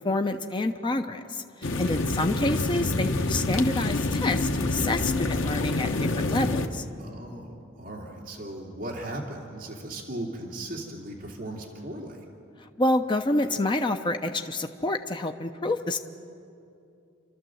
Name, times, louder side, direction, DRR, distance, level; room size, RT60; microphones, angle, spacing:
voice 1, 0.0-6.9 12.8-16.0, left 2 dB, 25° left, 6 dB, 0.6 m, -28 dB
sound 1, 1.6-6.7, left 2 dB, 70° left, 1.1 m, -27 dB
voice 2, 1.6-2.1 7.0-12.3, right 1 dB, 45° right, -3 dB, 2.7 m, -38 dB
30.0 x 12.5 x 7.7 m, 2.6 s
head